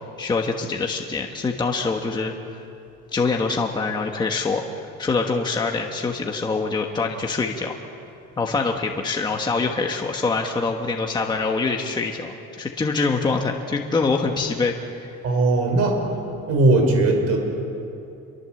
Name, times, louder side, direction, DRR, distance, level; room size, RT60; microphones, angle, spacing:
voice 1, 0.2-2.3 3.1-7.7 8.4-15.2, left 4 dB, 15° left, 2 dB, 1.3 m, -24 dB
voice 2, 15.2-16.0 16.5-17.4, right 2 dB, 55° right, 3 dB, 5.8 m, -18 dB
28.0 x 24.0 x 7.8 m, 2.7 s
cardioid pair, 180°, 29 cm